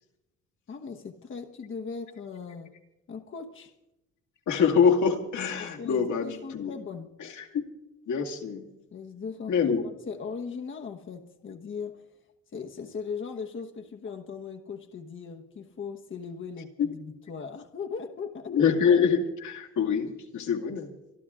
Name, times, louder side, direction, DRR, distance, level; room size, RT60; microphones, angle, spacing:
voice 1, 0.7-2.7 3.1-3.7 5.6-7.1 8.9-9.5 9.8-12.1 12.5-18.6, left 5 dB, 40° left, 5 dB, 1.1 m, -38 dB
voice 2, 4.5-6.7 7.2-7.7 8.1-8.7 9.5-9.8 16.8-16.9 18.5-20.9, left 6 dB, 75° left, 2 dB, 2.2 m, -25 dB
25.0 x 12.0 x 3.7 m, 0.95 s
cardioid pair, 90°, 30 cm